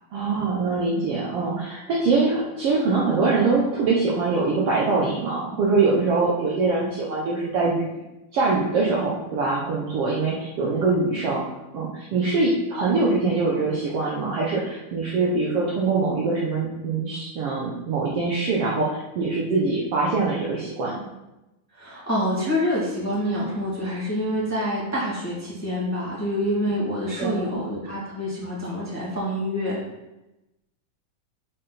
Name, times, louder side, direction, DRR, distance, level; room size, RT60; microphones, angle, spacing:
voice 1, 0.1-7.9 8.3-11.4 11.7-20.9 27.2-27.5, right 3 dB, 85° right, -5 dB, 1.3 m, -23 dB
voice 2, 21.7-29.8, equal, 5° left, -7 dB, 1.3 m, -27 dB
7.4 x 5.5 x 4.2 m, 0.98 s
omnidirectional pair, 4.2 m